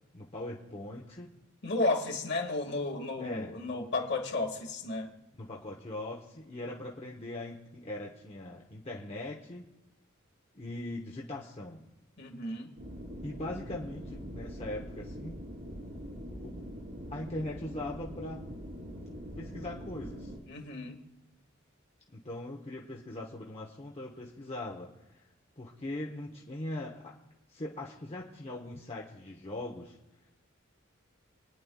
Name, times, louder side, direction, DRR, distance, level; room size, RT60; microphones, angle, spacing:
voice 1, 0.1-1.3 3.2-3.5 5.4-9.6 10.5-11.9 13.2-15.4 16.4-16.6 17.1-18.4 19.4-20.3 22.1-25.2 25.6-27.2 27.5-30.0, left 1 dB, 30° left, -2 dB, 0.9 m, -40 dB
voice 2, 1.6-5.1 12.2-12.7 20.5-21.0, left 2 dB, 55° left, 2 dB, 1.8 m, -33 dB
sound 1, 12.8-20.4, equal, 70° right, 2.9 m, -43 dB
28.5 x 9.6 x 2.3 m, 1.0 s
head